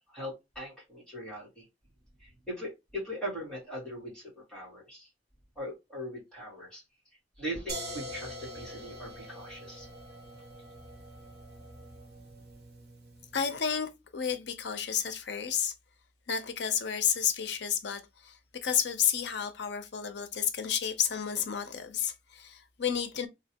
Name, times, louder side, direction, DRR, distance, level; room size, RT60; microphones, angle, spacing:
voice 1, 0.1-1.6 2.2-5.1 5.6-6.8 7.4-9.9, equal, 5° left, 2.0 m, -40 dB
sound 1, 7.7-13.5, equal, 55° right, 1.3 m, -44 dB
voice 2, 13.3-15.7 16.3-23.3, left 8 dB, 70° left, 0.6 m, -31 dB
3.1 x 2.8 x 2.8 m
head